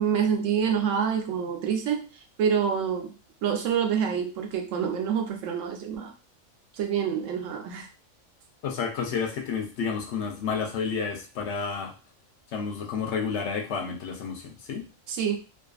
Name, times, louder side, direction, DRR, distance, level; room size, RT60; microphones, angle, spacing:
voice 1, 0.0-2.1 2.4-3.1 3.4-6.1 6.7-7.9 15.1-15.4, right 7 dB, 80° right, 4 dB, 0.9 m, -27 dB
voice 2, 8.6-11.9 12.5-14.8, left 6 dB, 70° left, 3 dB, 0.9 m, -30 dB
2.5 x 2.5 x 2.3 m, 0.32 s
omnidirectional pair, 1.3 m